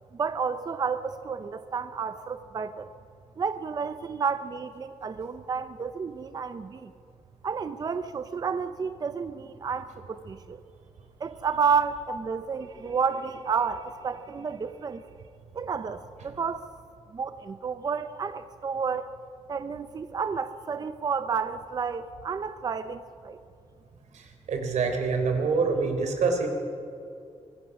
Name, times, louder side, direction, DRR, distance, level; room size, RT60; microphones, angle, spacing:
voice 1, 0.1-2.9 3.4-6.9 7.4-10.6 11.2-15.0 15.5-16.7 17.1-19.1 19.5-23.4, right 6 dB, 35° right, 10 dB, 0.6 m, -31 dB
voice 2, 24.1-26.5, right 4 dB, 90° right, 5 dB, 3.6 m, -26 dB
24.5 x 21.0 x 6.0 m, 2.6 s
wide cardioid pair, 160°, 12 cm